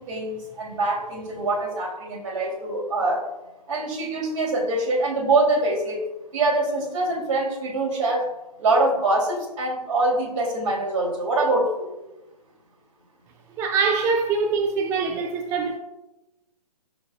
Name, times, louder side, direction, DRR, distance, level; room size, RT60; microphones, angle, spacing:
voice 1, 0.0-3.3 3.7-6.0 6.3-8.3 8.6-11.9, right 2 dB, 50° right, 3.4 m, -24 dB
voice 2, 13.6-15.8, right 4 dB, 15° right, 0.4 m, -23 dB
15.5 x 6.4 x 2.5 m
figure-of-eight pair, 130°, 21 cm